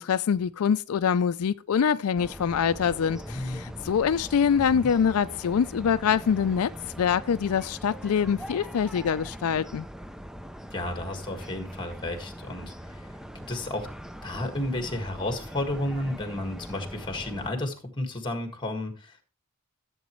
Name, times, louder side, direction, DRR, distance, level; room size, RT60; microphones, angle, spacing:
voice 1, 0.0-6.7 7.0-9.9, left 7 dB, 80° left, 0.4 m, -25 dB
sound 1, 2.2-17.5, equal, ahead, 0.4 m, -42 dB
voice 2, 3.2-3.8 4.5-4.9 10.7-13.9 14.2-19.2, left 1 dB, 20° left, 1.7 m, -33 dB
14.5 x 7.9 x 3.1 m
head